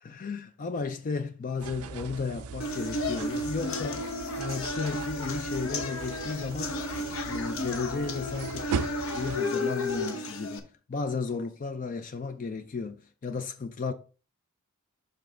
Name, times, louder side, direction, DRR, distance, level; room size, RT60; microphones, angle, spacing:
voice 1, 0.0-13.9, left 4 dB, 35° left, 0.4 m, -34 dB
sound 1, 1.6-9.4, right 6 dB, 85° right, 0.4 m, -39 dB
sound 2, 2.6-10.6, left 2 dB, 65° left, 0.9 m, -33 dB
6.2 x 5.3 x 3.7 m
head